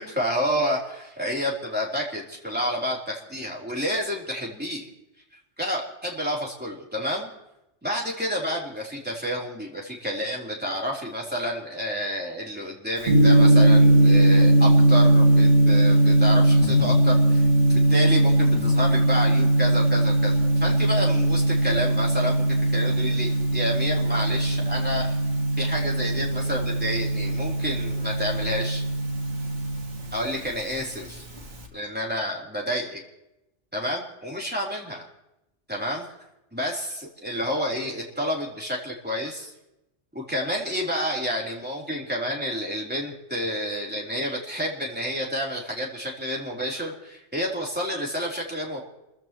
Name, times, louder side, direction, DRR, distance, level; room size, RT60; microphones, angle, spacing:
voice 1, 0.0-4.9 5.6-7.3 7.8-17.4 17.7-22.5 22.7-25.2 25.6-28.8 30.1-31.3 31.7-33.0 33.7-35.1 35.7-36.1 36.5-39.5 40.1-48.8, equal, 10° right, -3 dB, 3.5 m, -29 dB
Gong, 13.0-31.6, right 1 dB, 80° right, 2.8 m, -20 dB
30.0 x 15.0 x 3.1 m, 0.90 s
omnidirectional pair, 1.2 m